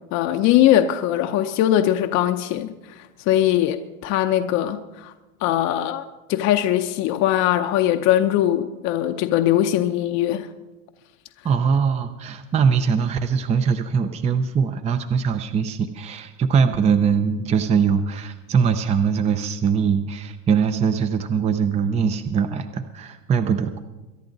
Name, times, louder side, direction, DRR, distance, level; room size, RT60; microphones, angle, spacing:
voice 1, 0.1-5.1 5.4-6.0 6.3-10.5, left 12 dB, 45° left, 6 dB, 0.8 m, -21 dB
voice 2, 11.4-23.8, right 6 dB, 15° right, 10 dB, 0.6 m, -22 dB
23.0 x 10.5 x 4.0 m, 1.1 s
supercardioid pair, 130°, 39 cm